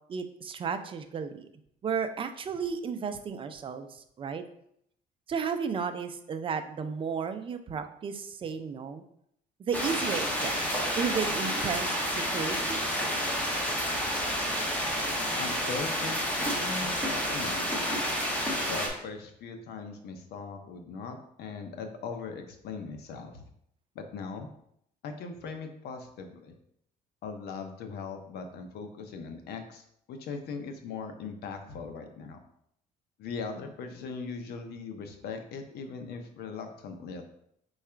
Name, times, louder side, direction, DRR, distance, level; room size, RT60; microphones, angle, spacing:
voice 1, 0.1-1.5 1.8-4.4 5.3-9.0 9.6-13.0, right 6 dB, 30° right, 8 dB, 0.4 m, -33 dB
sound 1, 9.7-18.9, equal, 10° left, 1.0 m, -30 dB
voice 2, 15.4-17.9 18.6-23.5 23.9-24.5 25.0-26.5 27.2-32.4 33.2-37.4, left 4 dB, 70° left, 6 dB, 0.7 m, -40 dB
4.6 x 2.4 x 4.3 m, 0.72 s
cardioid pair, 110°, 17 cm